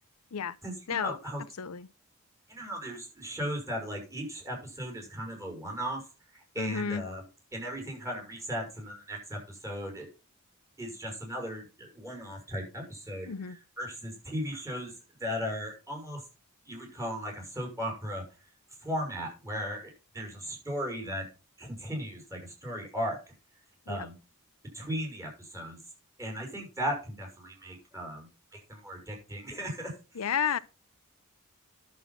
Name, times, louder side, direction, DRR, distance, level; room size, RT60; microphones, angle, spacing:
voice 1, 0.6-1.4 2.5-6.0 6.3-7.2 7.5-10.1 10.8-14.9 15.2-16.2 16.6-18.2 18.8-21.3 21.6-23.2 23.9-24.1 24.7-25.8 26.2-29.9, equal, 15° right, 5.9 m, -37 dB
voice 2, 1.6-1.9 6.6-7.0 13.3-13.6 23.9-24.1 30.1-30.6, left 7 dB, 85° left, 0.6 m, -31 dB
11.0 x 7.4 x 5.7 m
head